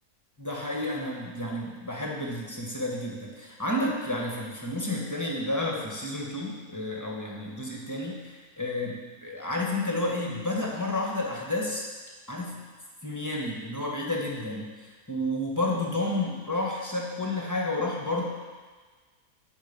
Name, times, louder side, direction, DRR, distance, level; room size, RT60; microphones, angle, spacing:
voice 1, 0.4-11.9 12.3-12.6 13.0-14.7 15.1-18.2, left 1 dB, 10° left, -3 dB, 1.6 m, -31 dB
8.9 x 6.2 x 7.3 m, 1.4 s
omnidirectional pair, 1.6 m